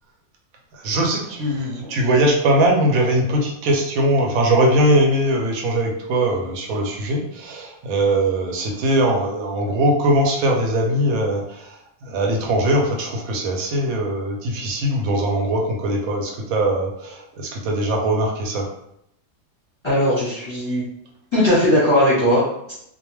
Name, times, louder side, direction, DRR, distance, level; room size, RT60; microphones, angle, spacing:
voice 1, 0.7-11.8 12.0-18.7, right 1 dB, 75° right, 0 dB, 1.0 m, -21 dB
voice 2, 19.8-20.8 21.3-22.7, left 1 dB, 25° left, -9 dB, 0.7 m, -18 dB
2.4 x 2.2 x 3.1 m, 0.75 s
omnidirectional pair, 1.5 m